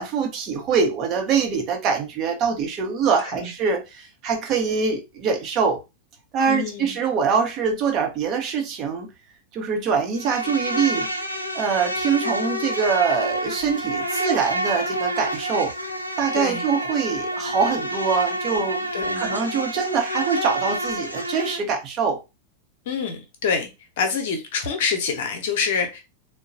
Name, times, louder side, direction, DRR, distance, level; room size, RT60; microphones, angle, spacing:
voice 1, 0.0-5.8 6.3-9.1 9.5-11.1 11.5-15.7 16.2-18.9 19.2-22.2, right 6 dB, 35° right, 0.8 m, -24 dB
voice 2, 6.5-7.0 16.3-16.6 18.9-19.2 22.9-23.7 24.0-26.0, left 5 dB, 55° left, 0.8 m, -26 dB
Insect, 10.2-21.6, right 1 dB, 90° right, 0.4 m, -28 dB
3.7 x 2.2 x 2.5 m
figure-of-eight pair, 90°, 0 cm